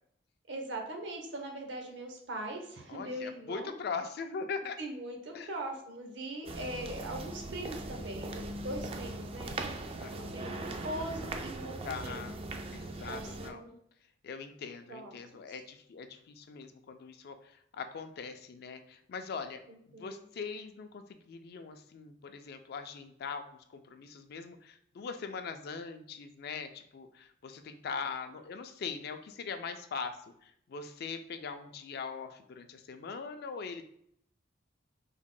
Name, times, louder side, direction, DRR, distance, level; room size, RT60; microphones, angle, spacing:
voice 1, 0.5-3.7 4.8-12.3 13.1-13.7 14.9-15.6 19.7-20.2, right 1 dB, 70° right, 3 dB, 0.7 m, -41 dB
voice 2, 2.9-4.8 5.3-5.6 10.0-10.7 11.8-12.4 12.7-13.6 14.2-19.6 19.9-33.8, left 5 dB, 60° left, 8 dB, 0.4 m, -41 dB
sound 1, 6.5-13.5, right 2 dB, 30° right, 0.3 m, -40 dB
3.5 x 2.1 x 3.7 m, 0.70 s
head